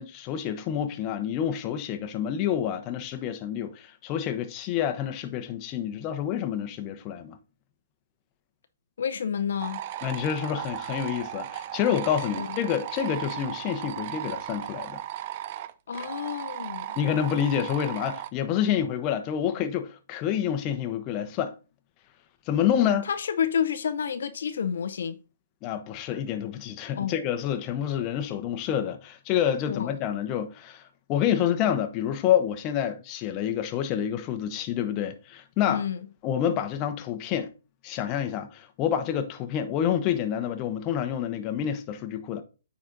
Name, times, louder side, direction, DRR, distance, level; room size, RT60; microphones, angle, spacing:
voice 1, 0.0-7.4 10.0-15.0 17.0-21.6 22.5-23.1 25.6-35.8 36.2-37.5 37.8-42.4, left 9 dB, 30° left, 0.9 m, -28 dB
voice 2, 9.0-9.8 12.4-12.6 15.9-17.0 23.0-25.2 27.0-27.1 29.7-29.9 35.7-36.0, left 7 dB, 70° left, 0.7 m, -29 dB
sound 1, 9.6-18.3, right 12 dB, 40° right, 0.5 m, -36 dB
9.3 x 4.1 x 3.9 m
hypercardioid pair, 150°, 0 cm